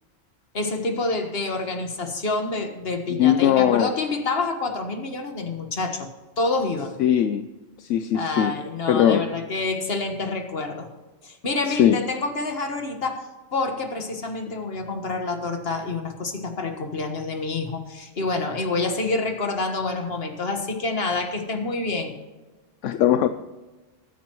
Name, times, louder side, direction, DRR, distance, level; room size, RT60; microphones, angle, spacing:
voice 1, 0.5-6.1 6.4-6.9 8.1-10.9 11.2-22.1, left 3 dB, 50° left, 5 dB, 1.8 m, -27 dB
voice 2, 3.1-3.9 7.0-7.5 7.8-8.6 8.9-9.3 11.7-12.0 22.8-23.3, left 10 dB, 75° left, 10 dB, 0.9 m, -20 dB
22.5 x 9.4 x 3.1 m, 1.2 s
omnidirectional pair, 1.3 m